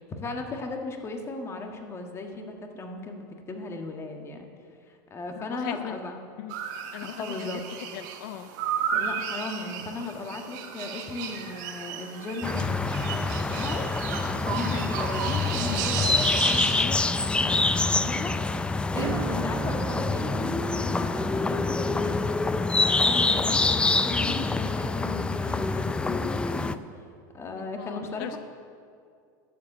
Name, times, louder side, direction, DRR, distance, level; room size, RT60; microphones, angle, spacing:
voice 1, 0.0-4.5 4.9-6.2 7.1-7.6 8.9-26.7 27.3-28.4, left 3 dB, 25° left, 3 dB, 1.5 m, -36 dB
voice 2, 5.4-6.0 6.4-6.5 6.9-7.6 7.9-8.5 14.7-14.9 27.8-28.4, left 13 dB, 75° left, 10 dB, 0.5 m, -38 dB
sound 1, 6.5-16.8, right 8 dB, 70° right, 1.3 m, -34 dB
sound 2, 12.4-26.7, left 3 dB, 10° left, 0.4 m, -26 dB
Acoustic guitar / Strum, 18.9-25.2, right 11 dB, 45° right, 0.6 m, -40 dB
11.5 x 7.6 x 7.1 m, 2.3 s
supercardioid pair, 115°, 11 cm